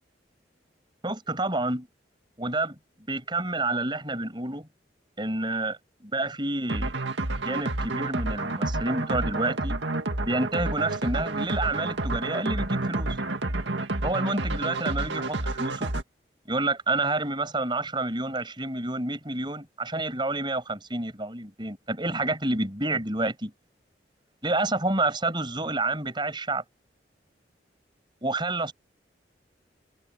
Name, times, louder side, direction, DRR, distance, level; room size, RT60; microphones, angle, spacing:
voice 1, 1.0-1.9 2.4-2.8 3.1-4.7 5.2-7.0 7.3-9.8 10.2-13.2 14.0-15.9 16.5-23.5 24.4-26.6 28.2-28.7, right 2 dB, 25° right, 6.4 m, -29 dB
sound 1, 6.7-16.0, right 2 dB, 90° right, 2.0 m, -29 dB
head